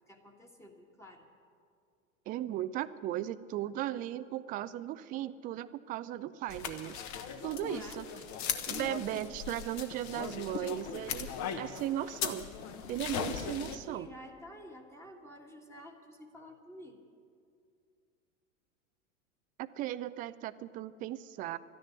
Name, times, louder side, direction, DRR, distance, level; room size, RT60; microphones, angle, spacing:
voice 1, 0.1-1.3 7.5-8.0 13.6-17.0, equal, 5° left, 1 dB, 1.5 m, -51 dB
voice 2, 2.3-7.0 7.4-8.1 8.7-12.5 12.9-14.1 19.6-21.6, right 13 dB, 20° right, 15 dB, 0.4 m, -37 dB
sound 1, 6.5-13.8, left 7 dB, 40° left, 1.3 m, -38 dB
13.0 x 10.5 x 9.6 m, 2.3 s
hypercardioid pair, 90°, 41 cm